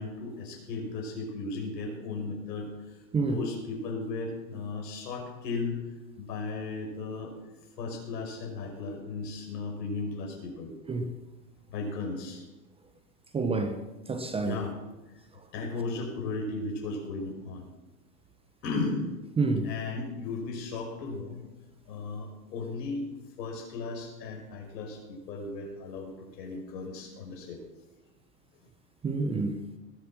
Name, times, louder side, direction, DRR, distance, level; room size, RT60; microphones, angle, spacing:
voice 1, 0.0-3.0 3.3-5.8 6.2-7.3 7.8-10.7 11.7-12.4 14.4-14.8 15.5-17.7 18.6-19.1 19.6-21.4 21.9-27.6, left 3 dB, 80° left, 5.5 m, -35 dB
voice 2, 13.3-13.8 14.1-14.6 19.4-19.7 29.0-29.6, right 3 dB, 10° right, 0.8 m, -28 dB
20.0 x 7.9 x 6.1 m
supercardioid pair, 145°, 48 cm